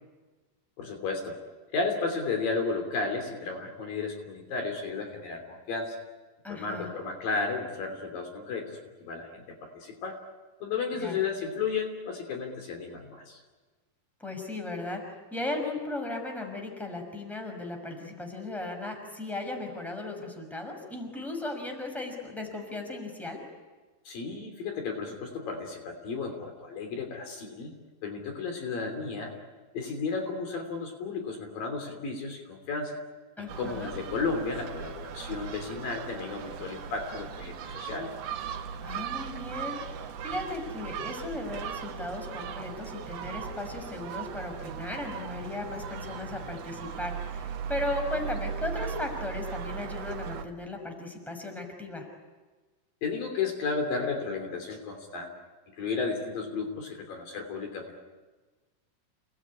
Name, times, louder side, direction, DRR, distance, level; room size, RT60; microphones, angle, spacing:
voice 1, 0.8-1.4 1.7-6.0 6.5-10.2 10.6-13.4 24.1-27.7 28.0-29.3 29.7-33.0 33.4-38.1 53.0-55.3 55.8-58.0, left 4 dB, 65° left, 4 dB, 4.8 m, -33 dB
voice 2, 6.4-6.9 10.9-11.2 14.2-15.0 15.3-23.4 33.4-33.9 38.8-52.1, left 2 dB, ahead, 3 dB, 5.5 m, -36 dB
Gull seagull, 33.5-50.5, right 7 dB, 80° right, 3.4 m, -38 dB
30.0 x 20.0 x 9.8 m, 1.3 s
omnidirectional pair, 4.4 m